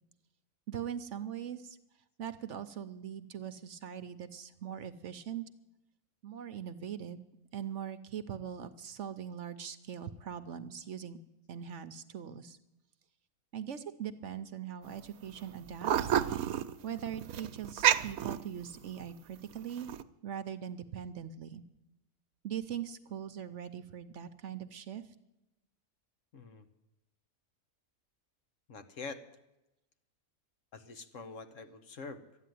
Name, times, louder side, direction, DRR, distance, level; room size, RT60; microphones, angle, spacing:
voice 1, 0.7-1.8 2.2-5.5 6.2-7.2 7.5-11.2 11.5-12.6 13.5-16.2 16.8-19.9 20.2-21.6 22.4-25.0, right 9 dB, 60° right, 11 dB, 1.0 m, -41 dB
sound 1, 14.8-15.0 15.3-19.0 19.5-20.0, right 10 dB, 85° right, 1.1 m, -30 dB
voice 2, 26.3-26.7 28.7-29.2 30.7-32.2, left 4 dB, 60° left, 8 dB, 1.4 m, -45 dB
13.0 x 9.6 x 9.3 m, 0.93 s
omnidirectional pair, 1.5 m